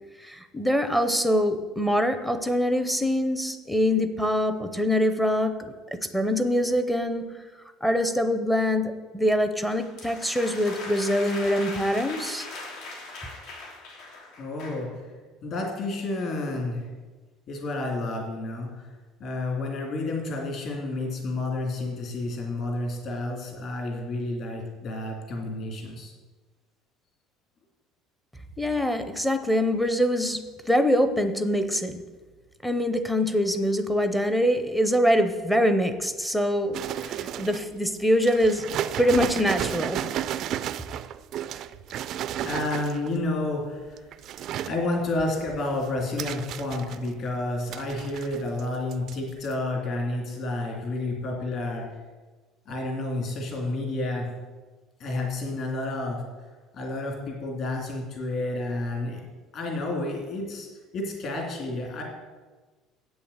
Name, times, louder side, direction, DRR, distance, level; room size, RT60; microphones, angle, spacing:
voice 1, 0.2-7.3 7.8-12.5 28.6-32.0 32.6-38.6 39.0-40.0, equal, 5° left, 8 dB, 0.6 m, -24 dB
sound 1, 9.7-14.9, left 3 dB, 85° left, 3.1 m, -39 dB
voice 2, 14.4-14.9 15.4-16.9 17.5-18.8 19.2-26.1 42.0-44.1 44.6-51.8 52.7-54.3 55.0-56.2 56.7-59.2 59.5-60.7 60.9-62.0, left 2 dB, 40° left, 0 dB, 2.7 m, -30 dB
sound 2, 36.7-37.7 38.2-43.2 43.9-44.8 45.2-47.3 47.7-48.6 48.9-49.1 49.4-49.5, right 11 dB, 40° right, 0.3 m, -33 dB
8.3 x 7.0 x 8.0 m, 1.3 s
cardioid pair, 180°, 0 cm